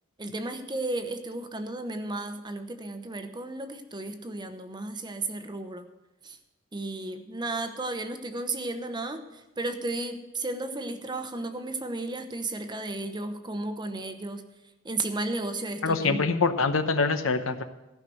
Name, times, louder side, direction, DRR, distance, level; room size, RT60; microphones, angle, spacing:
voice 1, 0.2-5.9 6.2-6.4 6.7-14.4 14.8-16.2, right 2 dB, 20° right, 8 dB, 0.9 m, -34 dB
voice 2, 15.8-17.6, left 4 dB, 75° left, 9 dB, 0.9 m, -25 dB
14.5 x 5.8 x 7.7 m, 0.99 s
head